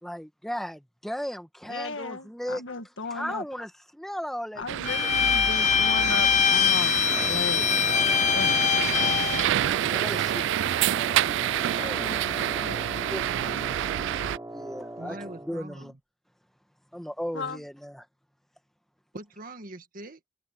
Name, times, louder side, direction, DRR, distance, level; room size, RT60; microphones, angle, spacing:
voice 1, 0.0-2.6 3.1-4.7 5.0-5.1 9.9-11.5 11.8-12.2 12.7-13.3 14.5-15.2 15.4-15.9 16.9-18.0, equal, ahead, 1.6 m, -36 dB
voice 2, 1.7-3.4 4.5-8.7 11.8-13.8 17.3-17.6, left 3 dB, 70° left, 1.7 m, -37 dB
sound 1, 4.7-14.4, right 11 dB, 65° right, 0.3 m, -28 dB
Bowed string instrument, 4.8-9.5, left 8 dB, 35° left, 0.4 m, -23 dB
Wind instrument woodwind instrument, 7.0-15.6, right 1 dB, 15° right, 5.7 m, -40 dB
voice 3, 15.0-16.0 19.1-20.3, right 2 dB, 45° right, 1.6 m, -42 dB
head